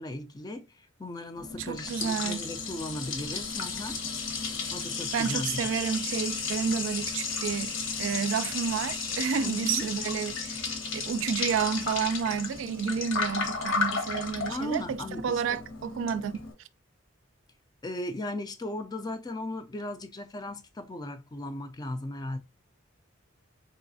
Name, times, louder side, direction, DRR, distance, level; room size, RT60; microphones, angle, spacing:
voice 1, 0.0-4.0 4.7-5.6 9.4-9.9 14.5-15.6 17.8-22.4, left 1 dB, 20° left, 0.3 m, -37 dB
Liquid, 1.4-16.5, left 4 dB, 70° left, 0.9 m, -33 dB
voice 2, 1.6-2.5 5.1-10.7 10.9-16.3, right 7 dB, 70° right, 0.3 m, -30 dB
3.9 x 3.1 x 2.6 m
head